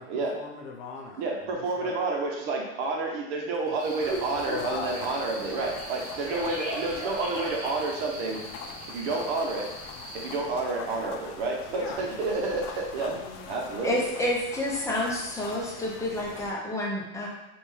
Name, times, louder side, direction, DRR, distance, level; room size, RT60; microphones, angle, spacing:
voice 1, 0.0-2.0 3.7-3.8 4.3-5.1 11.7-12.0 13.0-13.5, left 4 dB, 80° left, 1 dB, 0.9 m, -40 dB
voice 2, 1.2-8.4 8.9-9.7 10.1-13.2 13.5-14.0, right 3 dB, 60° right, 0 dB, 0.9 m, -30 dB
sound 1, 3.8-10.4, right 1 dB, 20° right, 1.2 m, -38 dB
sound 2, 4.0-16.5, left 6 dB, 50° left, 0.5 m, -44 dB
voice 3, 13.8-17.3, left 1 dB, 10° left, -3 dB, 0.8 m, -29 dB
3.4 x 2.6 x 3.2 m, 1.0 s
supercardioid pair, 120°, 36 cm